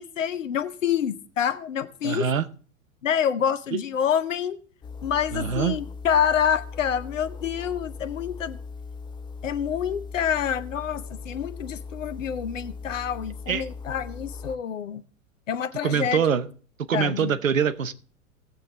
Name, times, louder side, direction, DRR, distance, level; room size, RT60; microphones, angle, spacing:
voice 1, 0.0-2.2 3.0-4.6 5.0-8.6 9.4-15.0 15.5-16.2 16.9-17.3, left 8 dB, 65° left, 13 dB, 0.9 m, -27 dB
voice 2, 2.0-2.5 3.7-3.8 5.3-5.8 13.5-13.7 15.8-16.5 16.8-17.9, right 7 dB, 75° right, 14 dB, 0.9 m, -24 dB
sound 1, 4.8-14.6, left 4 dB, 10° left, 0.6 m, -39 dB
17.0 x 7.8 x 3.4 m, 0.40 s
figure-of-eight pair, 90°, 40 cm